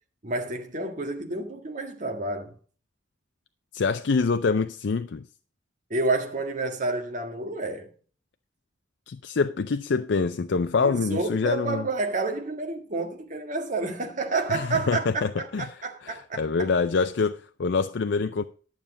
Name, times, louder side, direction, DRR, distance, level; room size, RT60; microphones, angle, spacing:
voice 1, 0.2-2.5 5.9-7.9 10.8-16.7, right 3 dB, 45° right, 1.7 m, -29 dB
voice 2, 3.7-5.2 9.1-11.9 14.5-15.7 16.0-18.4, left 4 dB, 65° left, 0.5 m, -25 dB
11.5 x 7.2 x 5.0 m
head